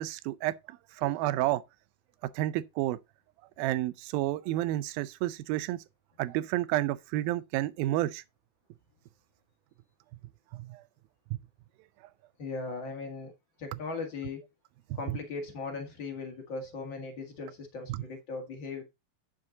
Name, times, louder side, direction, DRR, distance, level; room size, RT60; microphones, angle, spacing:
voice 1, 0.0-1.6 2.2-3.0 3.6-5.8 6.2-8.2 10.5-10.8 11.3-11.4 15.1-15.2 17.9-18.0, right 15 dB, 90° right, 2.4 m, -30 dB
voice 2, 12.4-13.3 13.6-14.4 14.9-18.8, left 4 dB, 40° left, 2.1 m, -38 dB
9.9 x 6.4 x 3.8 m
omnidirectional pair, 4.1 m